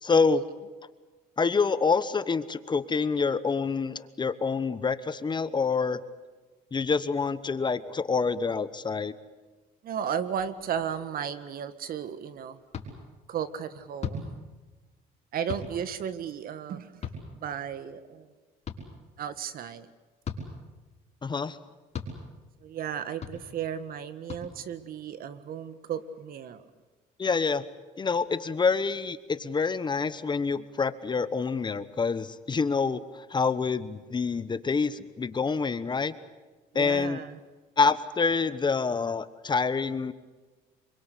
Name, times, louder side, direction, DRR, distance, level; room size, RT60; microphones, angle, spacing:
voice 1, 0.0-0.4 1.4-6.0 6.7-9.1 21.2-21.6 27.2-27.6 28.0-36.1 36.7-37.2 37.8-40.1, left 5 dB, 25° left, 14 dB, 1.1 m, -27 dB
voice 2, 9.8-12.6 13.3-14.4 15.3-17.0 17.3-18.3 19.2-19.9 22.6-26.7 36.7-37.4, right 8 dB, 60° right, 13 dB, 1.7 m, -34 dB
sound 1, 12.7-12.9 14.0-14.2 15.5-15.7 17.0-17.2 18.6-18.8 20.2-20.4 21.9-22.1 23.2-23.3 24.3-24.4, left 5 dB, 40° left, 5.6 m, -34 dB
26.0 x 23.5 x 8.4 m, 1.3 s
cardioid pair, 110°, 17 cm